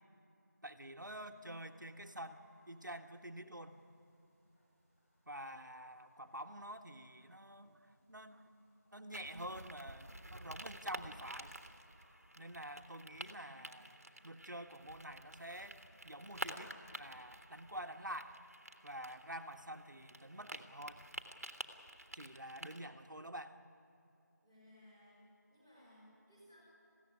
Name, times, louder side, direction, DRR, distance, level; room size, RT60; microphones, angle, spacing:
voice 1, 0.6-3.8 5.3-8.4 8.9-11.5 12.4-18.3 18.8-21.0 22.1-23.6, right 1 dB, 85° right, 6 dB, 1.5 m, -48 dB
sound 1, 1.2-14.0, equal, 45° left, 6.1 m, -75 dB
sound 2, 9.1-22.8, right 1 dB, 55° right, 1.6 m, -50 dB
voice 2, 24.4-25.2 25.5-26.7, left 1 dB, 10° left, -9 dB, 4.0 m, -62 dB
21.5 x 15.5 x 9.8 m, 2.8 s
figure-of-eight pair, 175°, 10 cm